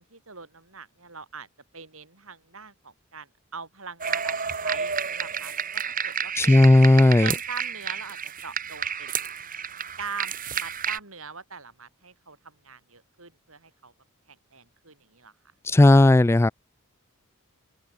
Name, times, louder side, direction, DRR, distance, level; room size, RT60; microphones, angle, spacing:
voice 1, 0.0-1.5 1.7-6.8 7.2-9.2 10.0-13.9 14.3-15.3, right 5 dB, 70° right, 7.4 m, -42 dB
sound 1, 4.0-11.0, right 7 dB, 40° right, 6.6 m, -30 dB
voice 2, 6.4-7.3 15.7-16.5, left 2 dB, 10° left, 0.3 m, -15 dB
head